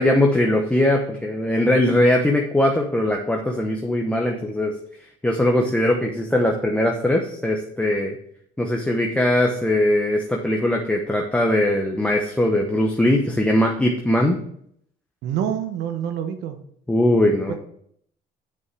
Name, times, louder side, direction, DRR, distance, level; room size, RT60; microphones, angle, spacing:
voice 1, 0.0-4.7 5.2-8.1 8.6-14.4 16.9-17.5, left 1 dB, 10° left, 0 dB, 1.0 m, -20 dB
voice 2, 15.2-16.6 17.5-17.6, right 9 dB, 85° right, 8 dB, 1.2 m, -26 dB
8.4 x 6.4 x 4.6 m, 0.67 s
cardioid pair, 110°, 17 cm